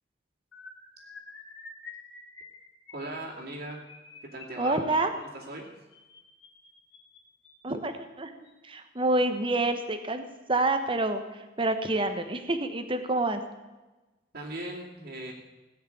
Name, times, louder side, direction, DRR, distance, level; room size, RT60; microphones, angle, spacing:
sound 1, 0.5-7.7 8.5-8.7 9.0-9.2 9.5-9.7, left 4 dB, 85° left, 3.2 m, -49 dB
voice 1, 2.9-3.8 4.3-4.8 5.2-5.7 14.3-15.3, right 1 dB, 55° right, -7 dB, 2.5 m, -38 dB
voice 2, 4.6-5.1 7.6-8.3 8.6-13.4, right 2 dB, 30° right, 7 dB, 1.1 m, -28 dB
17.0 x 6.6 x 8.7 m, 1.1 s
head